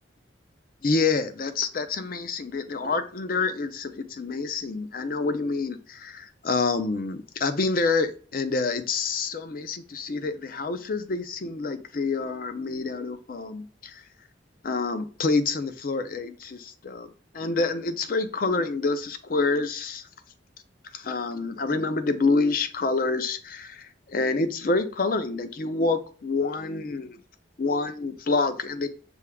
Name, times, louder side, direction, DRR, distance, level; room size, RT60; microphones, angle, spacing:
voice 1, 0.8-14.0 14.6-17.1 17.3-20.0 20.9-27.2 27.6-28.9, left 3 dB, 50° left, 10 dB, 0.5 m, -27 dB
6.1 x 2.2 x 3.5 m, 0.39 s
head